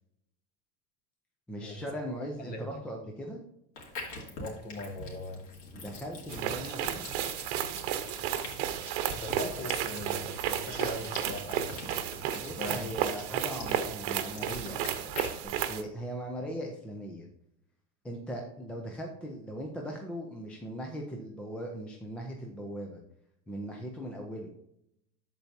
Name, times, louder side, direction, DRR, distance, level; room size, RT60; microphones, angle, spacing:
voice 1, 1.5-3.4 5.7-7.0 12.3-15.1 15.4-17.3 18.0-23.0 23.5-24.5, equal, 5° left, 0 dB, 0.3 m, -39 dB
sound 1, 3.8-15.5, left 2 dB, 75° left, 2.7 m, -45 dB
voice 2, 4.4-5.4 9.1-11.7 12.4-12.9, left 1 dB, 25° left, 4 dB, 1.2 m, -40 dB
sound 2, 6.3-15.8, right 10 dB, 65° right, 1.0 m, -33 dB
13.5 x 4.5 x 2.7 m, 0.78 s
cardioid pair, 170°, 36 cm